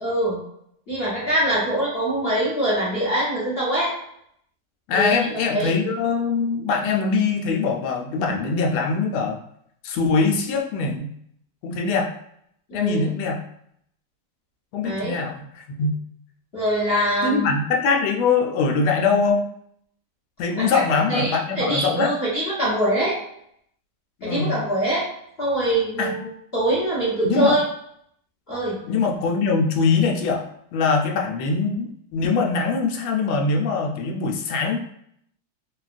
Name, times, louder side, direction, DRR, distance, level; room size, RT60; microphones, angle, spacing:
voice 1, 0.0-0.4 0.9-3.9 4.9-5.7 12.7-13.1 14.8-15.1 16.5-17.5 20.5-20.8 21.1-23.2 24.2-25.1 25.4-27.6 28.5-28.8, right 1 dB, 50° left, -8 dB, 0.7 m, -23 dB
voice 2, 4.9-9.4 9.8-11.1 11.6-12.1 12.7-13.4 14.7-16.0 17.2-19.4 20.4-22.2 24.2-24.6 26.0-26.1 27.2-27.6 28.9-30.4 30.7-34.8, left 4 dB, 85° left, 1 dB, 1.4 m, -22 dB
3.7 x 2.3 x 2.4 m, 0.71 s
omnidirectional pair, 2.2 m